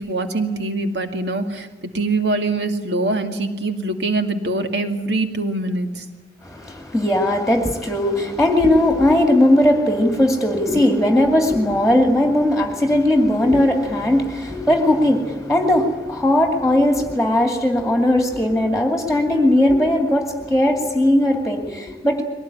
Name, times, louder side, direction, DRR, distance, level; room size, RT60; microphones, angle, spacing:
voice 1, 0.0-1.7 1.9-6.0 10.8-10.9, right 2 dB, 85° right, 6 dB, 2.3 m, -23 dB
voice 2, 6.4-22.2, left 1 dB, ahead, 3 dB, 2.3 m, -18 dB
22.0 x 18.5 x 9.9 m, 1.1 s
head